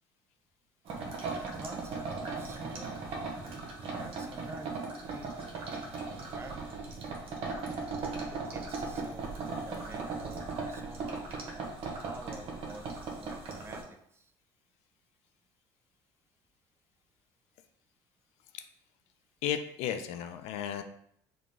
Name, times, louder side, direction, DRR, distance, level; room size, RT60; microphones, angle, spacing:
sound 1, 0.9-13.8, right 3 dB, 60° right, 0.9 m, -38 dB
voice 1, 1.2-3.0 4.0-4.8 5.1-6.8 8.5-11.7 12.0-13.8 14.1-14.2, right 3 dB, 20° right, 5 dB, 0.5 m, -48 dB
voice 2, 19.4-20.8, left 10 dB, 70° left, 8 dB, 0.4 m, -34 dB
3.9 x 2.3 x 3.2 m, 0.70 s
supercardioid pair, 80°, 11 cm